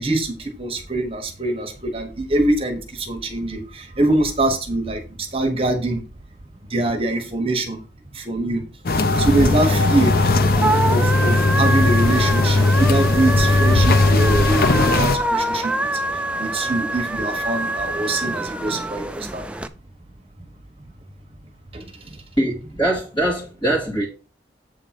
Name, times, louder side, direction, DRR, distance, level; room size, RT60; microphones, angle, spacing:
voice 1, 0.0-5.0 5.3-6.0 6.7-7.8 8.1-8.6 9.2-10.2 10.9-15.7 16.4-19.4 21.7-21.8, right 2 dB, 30° right, 1.3 m, -23 dB
sound 1, 8.9-15.2, left 2 dB, 55° left, 0.6 m, -18 dB
sound 2, 9.1-19.7, right 1 dB, 5° right, 0.4 m, -26 dB
voice 2, 22.4-24.0, right 1 dB, 30° left, 2.3 m, -22 dB
8.1 x 3.8 x 5.9 m
head